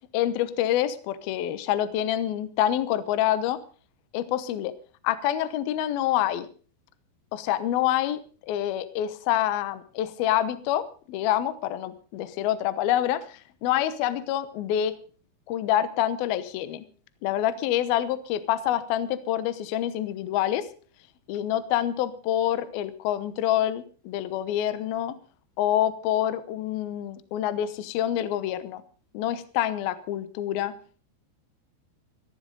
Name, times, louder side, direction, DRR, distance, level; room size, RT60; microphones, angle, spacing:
voice 1, 0.1-3.6 4.1-4.7 5.0-6.5 7.3-15.0 15.5-16.8 17.2-20.7 21.3-25.2 25.6-28.8 29.1-30.7, left 12 dB, 80° left, 14 dB, 2.1 m, -27 dB
14.5 x 14.0 x 5.2 m, 0.40 s
omnidirectional pair, 5.8 m